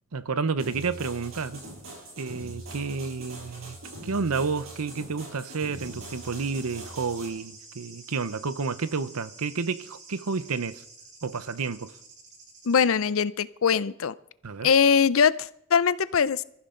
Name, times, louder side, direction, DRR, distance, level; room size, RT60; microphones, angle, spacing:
voice 1, 0.1-1.6 2.2-3.8 4.0-10.8 11.2-12.0 14.4-14.7, right 4 dB, 85° right, 0.8 m, -30 dB
sound 1, 0.6-7.3, right 1 dB, 65° right, 6.5 m, -42 dB
sound 2, 5.7-12.9, right 3 dB, 35° right, 2.6 m, -49 dB
voice 2, 12.7-14.1 14.6-16.4, left 6 dB, 65° left, 0.5 m, -22 dB
24.5 x 14.5 x 3.8 m
head